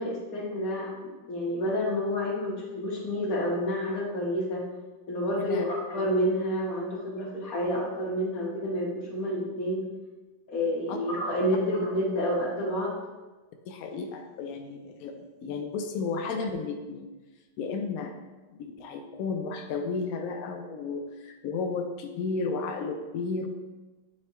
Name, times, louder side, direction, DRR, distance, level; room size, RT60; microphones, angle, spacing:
voice 1, 0.0-4.6 5.1-9.8 10.5-13.0, equal, 50° left, -3 dB, 1.7 m, -29 dB
voice 2, 13.7-17.1 17.6-18.1 18.5-23.5, left 4 dB, 80° left, 5 dB, 0.8 m, -33 dB
8.7 x 4.6 x 3.0 m, 1.2 s
omnidirectional pair, 2.2 m